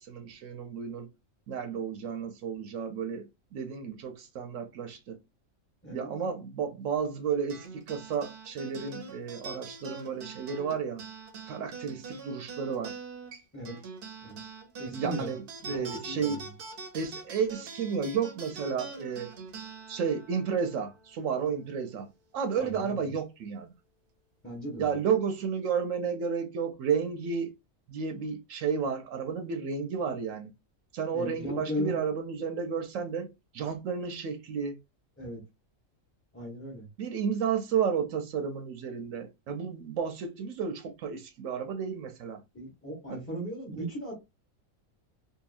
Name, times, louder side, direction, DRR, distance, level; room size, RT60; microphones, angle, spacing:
voice 1, 0.0-1.1 1.5-5.2 5.9-11.0 11.5-12.9 14.9-16.4 16.9-19.3 19.9-22.1 22.3-23.7 24.8-27.5 27.9-30.5 30.9-33.3 33.5-34.8 37.0-42.4 43.1-43.2 43.7-43.9, right 6 dB, 75° right, 0.9 m, -32 dB
sound 1, 7.5-22.2, right 4 dB, 55° right, 0.7 m, -44 dB
voice 2, 14.8-15.4 15.7-16.5 22.6-23.1 24.4-25.0 31.1-32.0 35.2-35.4 36.3-36.9 42.5-44.1, equal, 10° left, 0.8 m, -37 dB
2.7 x 2.6 x 2.4 m
omnidirectional pair, 1.4 m